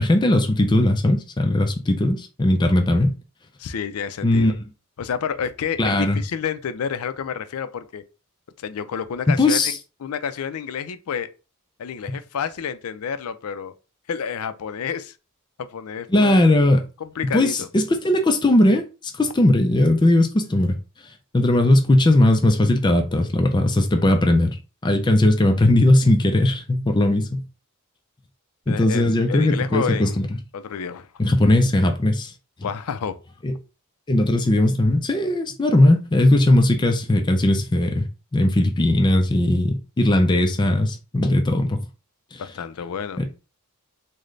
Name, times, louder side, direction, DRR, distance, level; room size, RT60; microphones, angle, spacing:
voice 1, 0.0-3.1 4.2-4.5 5.8-6.2 9.4-9.8 12.1-12.2 16.1-16.8 17.2-18.8 19.2-20.8 21.3-24.5 24.8-27.4 28.7-30.3 31.2-32.3 33.4-33.5 34.1-38.1 38.3-41.8 42.3-42.4 43.2-43.3, left 1 dB, 20° left, 0.4 m, -18 dB
voice 2, 3.6-4.5 5.0-8.0 8.6-9.7 10.0-11.3 11.8-13.7 14.1-15.2 15.6-16.5 17.0-17.7 28.7-30.2 30.5-31.1 32.6-33.2 42.4-43.2, left 7 dB, 85° left, 0.4 m, -29 dB
3.8 x 2.1 x 3.2 m
head